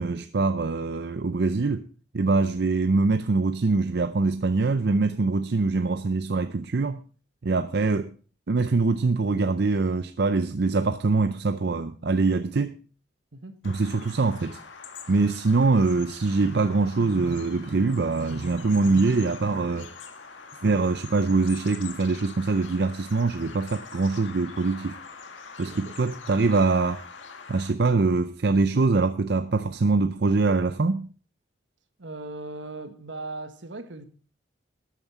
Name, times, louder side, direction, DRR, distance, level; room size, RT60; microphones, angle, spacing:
voice 1, 0.0-1.8 2.1-7.0 7.4-8.1 8.5-12.7 13.6-14.6 15.1-19.9 20.6-25.0 25.6-27.0 27.5-31.1, right 3 dB, 55° right, 0.5 m, -23 dB
Bird vocalization bird call bird song, 13.6-27.7, left 5 dB, 80° left, 1.8 m, -44 dB
voice 2, 32.0-34.0, right 2 dB, 75° right, 1.4 m, -38 dB
13.0 x 9.2 x 4.7 m
head